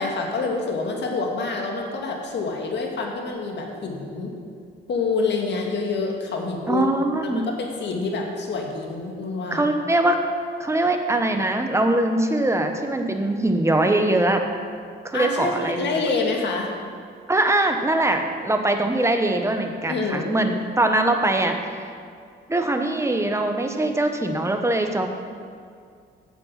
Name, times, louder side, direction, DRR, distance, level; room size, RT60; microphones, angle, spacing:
voice 1, 0.0-4.3 4.9-6.9 7.2-9.7 15.1-16.7 19.9-20.3, left 3 dB, 60° left, 1 dB, 1.9 m, -27 dB
voice 2, 6.7-7.5 9.5-10.2 10.6-14.4 15.0-16.0 17.3-21.8 22.5-25.1, right 1 dB, 15° right, 5 dB, 1.1 m, -22 dB
7.9 x 7.2 x 7.4 m, 2.2 s
cardioid pair, 90°, 20 cm